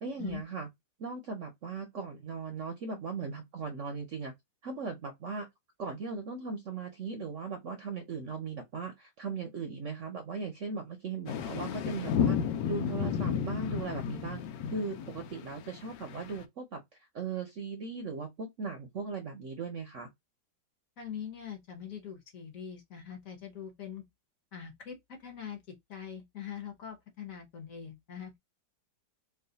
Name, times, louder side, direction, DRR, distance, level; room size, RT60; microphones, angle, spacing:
voice 1, 0.0-0.7 1.0-4.3 4.6-5.5 5.8-12.4 12.7-14.4 14.7-16.8 17.1-20.1, right 4 dB, 65° right, 0.8 m, -38 dB
sound 1, 11.3-16.4, left 8 dB, 85° left, 1.3 m, -32 dB
voice 2, 21.0-24.0 24.5-25.6 25.9-28.3, left 8 dB, 55° left, 1.3 m, -43 dB
3.1 x 2.4 x 3.8 m
omnidirectional pair, 1.9 m